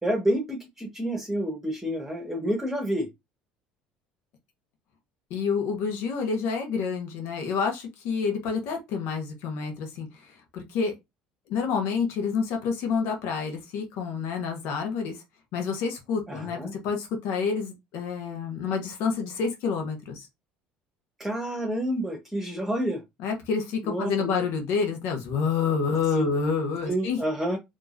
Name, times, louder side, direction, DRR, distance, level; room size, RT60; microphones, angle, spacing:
voice 1, 0.0-3.1 16.3-16.7 21.2-23.0 23.8-24.4 26.1-26.3 26.8-27.6, equal, 10° right, 1.5 m, -29 dB
voice 2, 5.3-10.9 11.5-15.2 15.5-20.3 23.2-27.2, left 5 dB, 65° left, 1.3 m, -28 dB
4.6 x 3.0 x 2.7 m
hypercardioid pair, 65°, 4 cm